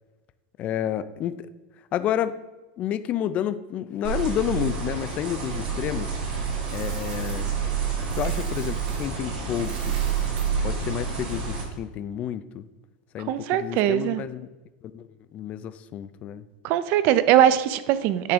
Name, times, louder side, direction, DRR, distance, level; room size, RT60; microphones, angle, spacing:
voice 1, 0.6-1.5 1.9-2.4 2.8-6.1 6.7-7.5 8.1-10.0 10.6-12.7 13.1-14.5 14.9-15.1 15.3-16.4, left 10 dB, 30° left, 13 dB, 0.3 m, -30 dB
sound 1, 4.0-11.6, right 6 dB, 90° right, 2.3 m, -28 dB
Coin (dropping), 6.3-9.1 9.5-11.7, right 4 dB, 60° right, 1.6 m, -47 dB
voice 2, 13.2-14.2 16.6-18.3, right 11 dB, 45° right, 14 dB, 0.4 m, -21 dB
8.9 x 3.5 x 5.0 m, 1.1 s
supercardioid pair, 160°, 5 cm